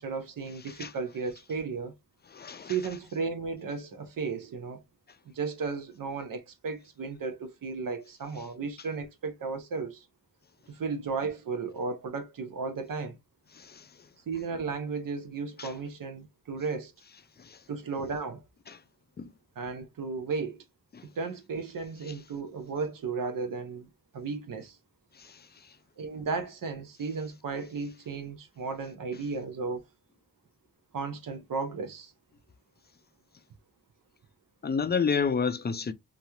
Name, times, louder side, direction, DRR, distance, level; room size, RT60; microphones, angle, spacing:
voice 1, 0.0-1.9 2.6-4.8 5.3-10.1 10.7-13.2 14.3-16.9 17.7-18.4 19.6-20.6 21.0-24.8 26.0-29.8 30.9-32.1, right 4 dB, 75° right, 0.8 m, -34 dB
voice 2, 2.3-2.7 15.6-15.7 19.2-19.3 34.6-35.9, left 5 dB, 30° left, 0.4 m, -28 dB
3.0 x 2.4 x 2.6 m
cardioid pair, 60°, 34 cm